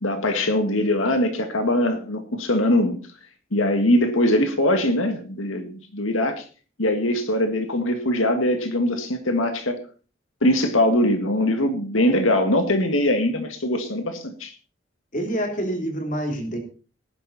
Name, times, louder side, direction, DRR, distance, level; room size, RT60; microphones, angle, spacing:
voice 1, 0.0-3.0 3.5-6.4 6.8-9.8 10.4-14.5, left 1 dB, 85° left, 6 dB, 2.0 m, -22 dB
voice 2, 15.1-16.6, right 1 dB, 40° left, 4 dB, 3.4 m, -27 dB
18.5 x 11.0 x 4.3 m, 0.37 s
head